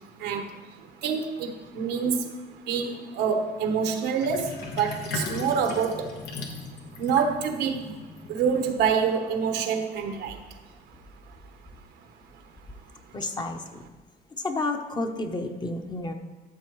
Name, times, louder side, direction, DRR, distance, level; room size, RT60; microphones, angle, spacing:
voice 1, 1.0-2.3 2.7-4.5 4.8-6.0 7.0-7.8 8.3-10.3, right 6 dB, 85° right, 6 dB, 1.1 m, -26 dB
Sink (filling or washing), 4.2-8.9, left 3 dB, 85° left, 1.3 m, -37 dB
voice 2, 13.1-13.8 14.4-16.1, left 2 dB, 25° left, 5 dB, 0.9 m, -31 dB
13.0 x 6.9 x 3.1 m, 1.3 s
cardioid pair, 110°, 17 cm